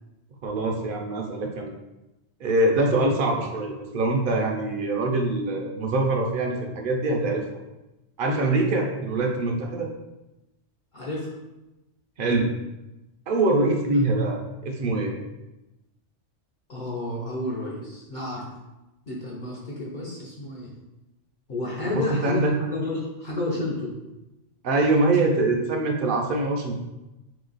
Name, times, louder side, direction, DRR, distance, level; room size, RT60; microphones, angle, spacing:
voice 1, 0.4-1.7 2.4-7.4 8.2-9.9 12.2-12.5 13.3-15.1 21.9-22.6 24.6-26.8, right 2 dB, 55° right, 1 dB, 0.7 m, -24 dB
voice 2, 10.9-11.3 16.7-18.4 19.1-20.7 21.5-23.9, left 2 dB, 50° left, -5 dB, 0.7 m, -31 dB
3.2 x 3.0 x 3.9 m, 1.0 s
omnidirectional pair, 1.2 m